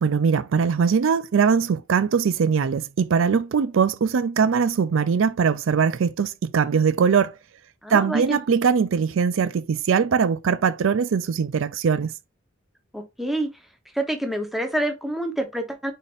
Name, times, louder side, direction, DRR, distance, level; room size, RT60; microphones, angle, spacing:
voice 1, 0.0-7.3 7.9-12.1, right 6 dB, 80° right, 0.4 m, -21 dB
voice 2, 7.8-8.4 12.9-13.5 13.9-15.9, right 1 dB, ahead, 0.9 m, -27 dB
5.1 x 4.1 x 2.5 m
head